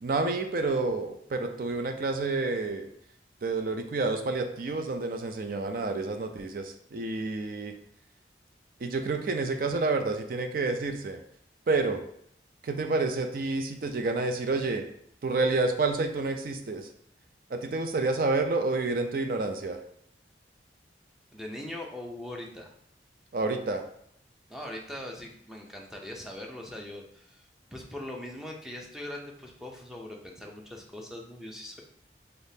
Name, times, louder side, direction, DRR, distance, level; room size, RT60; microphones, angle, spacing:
voice 1, 0.0-2.9 3.4-7.7 8.8-11.2 11.7-12.0 12.6-14.8 15.2-16.9 17.5-19.8 23.3-23.8, right 3 dB, 55° right, 6 dB, 0.4 m, -29 dB
voice 2, 21.3-22.7 24.5-31.8, left 1 dB, 5° right, 0 dB, 0.5 m, -41 dB
4.0 x 3.5 x 2.7 m, 0.66 s
head